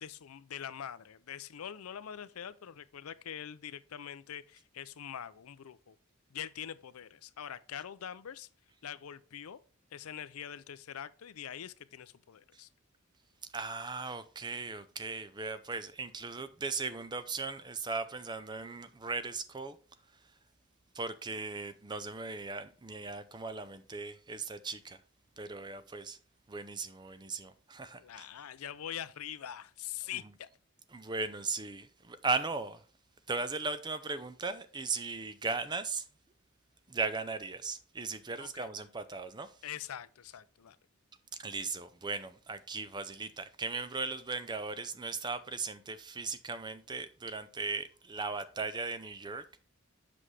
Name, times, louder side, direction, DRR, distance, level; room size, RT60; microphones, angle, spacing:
voice 1, 0.0-6.0 6.3-8.5 8.8-9.6 9.9-12.7 28.0-30.5 38.4-38.7 39.6-40.8, left 9 dB, 85° left, 0.5 m, -44 dB
voice 2, 13.5-19.8 20.2-20.3 20.9-25.0 25.4-26.2 26.5-28.3 30.1-30.3 30.9-32.8 33.3-36.1 36.9-39.6 41.4-49.4, right 4 dB, 20° right, 0.5 m, -37 dB
7.7 x 6.2 x 3.3 m
head